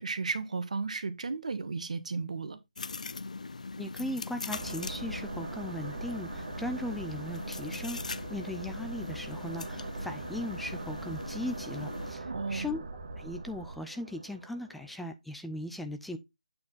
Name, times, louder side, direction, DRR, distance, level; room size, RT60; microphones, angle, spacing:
voice 1, 0.0-2.6 12.2-12.7, right 4 dB, 65° right, 1.4 m, -34 dB
sound 1, 2.7-12.1, left 4 dB, 75° left, 0.5 m, -41 dB
voice 2, 3.8-12.8 13.2-16.2, left 1 dB, ahead, 0.4 m, -38 dB
sound 2, 4.5-15.0, right 3 dB, 50° right, 1.7 m, -41 dB
8.5 x 4.7 x 3.9 m
figure-of-eight pair, 155°, 4 cm